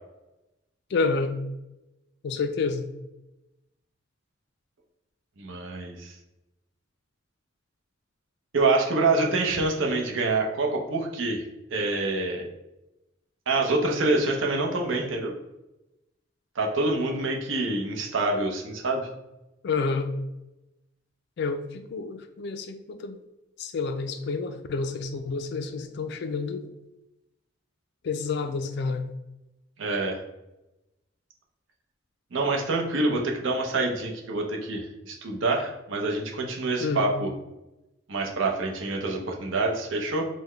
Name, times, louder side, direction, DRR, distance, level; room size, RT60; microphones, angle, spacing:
voice 1, 0.9-1.4 2.2-2.9 19.6-20.1 21.4-23.2 23.6-26.7 28.0-29.1 36.8-37.1, left 4 dB, 55° left, 9 dB, 0.3 m, -29 dB
voice 2, 5.4-6.1 8.5-11.4 11.7-12.4 13.5-15.3 16.6-19.1 29.8-30.2 32.3-37.3 38.1-40.3, right 2 dB, 75° right, 2 dB, 0.6 m, -26 dB
3.8 x 2.1 x 3.2 m, 0.95 s
head